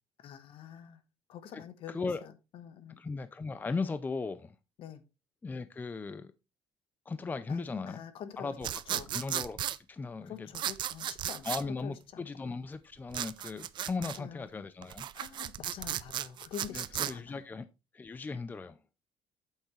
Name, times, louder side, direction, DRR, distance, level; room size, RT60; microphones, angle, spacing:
voice 1, 0.2-1.0 1.3-3.0 4.8-5.0 7.5-8.5 8.9-9.2 10.2-12.2 14.0-14.4 15.1-17.4, left 9 dB, 60° left, 1.2 m, -46 dB
voice 2, 1.5-2.2 3.0-4.5 5.4-6.3 7.1-8.0 8.4-9.6 9.9-10.5 11.4-15.1 16.7-17.7 17.9-18.8, left 4 dB, 15° left, 0.5 m, -37 dB
sound 1, 8.6-9.8 10.5-11.6 13.1-14.2 14.8-17.1, right 11 dB, 50° right, 0.5 m, -35 dB
8.5 x 8.1 x 3.2 m
cardioid pair, 140°, 10 cm